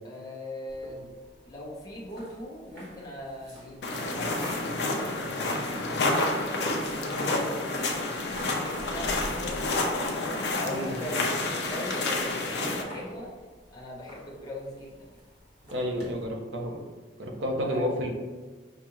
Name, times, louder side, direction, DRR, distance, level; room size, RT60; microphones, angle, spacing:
voice 1, 0.0-1.1 1.4-5.6 6.9-8.2 8.5-10.0 10.6-13.3 13.7-15.2 17.6-17.8, left 1 dB, 20° left, -6 dB, 0.8 m, -40 dB
sound 1, 0.7-16.2, equal, 65° right, 1.4 m, -47 dB
sound 2, 3.8-12.8, left 2 dB, 60° left, 0.6 m, -29 dB
voice 2, 10.7-11.0 15.7-16.8 17.2-18.1, equal, 85° right, 2 dB, 0.7 m, -30 dB
5.7 x 2.4 x 3.0 m, 1.3 s
head